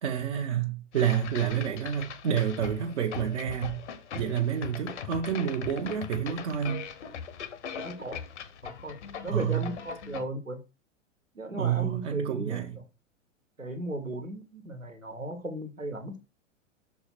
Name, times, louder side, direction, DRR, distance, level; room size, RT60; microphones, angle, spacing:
voice 1, 0.0-3.8 4.1-6.9 9.3-9.7 11.6-12.8, right 9 dB, 60° right, 1.0 m, -29 dB
sound 1, 0.9-10.2, left 7 dB, 60° left, 1.0 m, -40 dB
voice 2, 7.8-8.2 8.6-9.0 9.2-10.6 11.3-12.8 13.6-16.1, right 1 dB, 90° right, 1.5 m, -36 dB
6.4 x 4.7 x 4.5 m
figure-of-eight pair, 100°, 38 cm